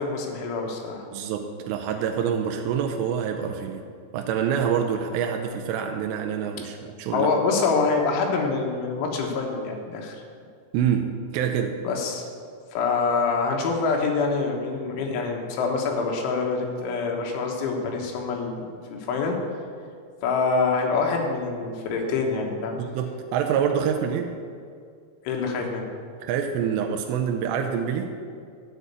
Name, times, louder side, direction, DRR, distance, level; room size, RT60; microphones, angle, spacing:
voice 1, 0.0-1.1 7.1-10.2 11.8-12.3 12.7-18.7 18.9-19.4 20.2-22.8 25.3-25.9, left 4 dB, 80° left, 1 dB, 3.6 m, -25 dB
voice 2, 1.1-3.8 4.1-7.3 10.7-11.8 22.8-24.3 26.2-28.2, right 8 dB, 80° right, 4 dB, 2.6 m, -26 dB
12.0 x 4.2 x 8.2 m, 2.2 s
omnidirectional pair, 5.4 m